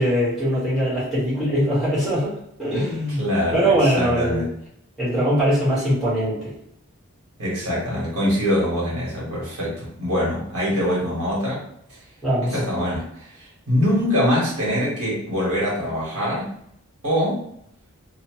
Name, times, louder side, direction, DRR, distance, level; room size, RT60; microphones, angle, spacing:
voice 1, 0.0-2.3 2.6-3.2 3.5-4.4 5.0-6.5 12.2-12.6, equal, ahead, -11 dB, 1.3 m, -21 dB
voice 2, 3.2-4.5 7.4-11.6 12.5-16.5 17.0-17.4, equal, 85° right, -6 dB, 1.5 m, -23 dB
2.9 x 2.3 x 3.0 m, 0.72 s
head